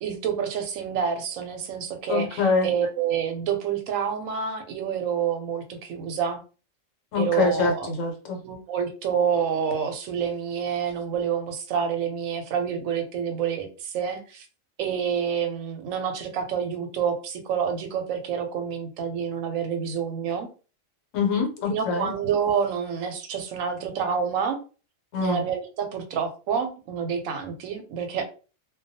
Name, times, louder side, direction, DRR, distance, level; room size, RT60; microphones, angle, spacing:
voice 1, 0.0-6.4 7.2-7.9 8.4-14.5 14.8-20.5 21.7-24.6 25.2-28.2, right 7 dB, 85° right, 6 dB, 1.0 m, -28 dB
voice 2, 2.1-2.7 7.1-8.4 21.1-22.1 25.1-25.4, left 4 dB, 75° left, 2 dB, 1.1 m, -24 dB
2.3 x 2.2 x 2.6 m, 0.35 s
omnidirectional pair, 1.4 m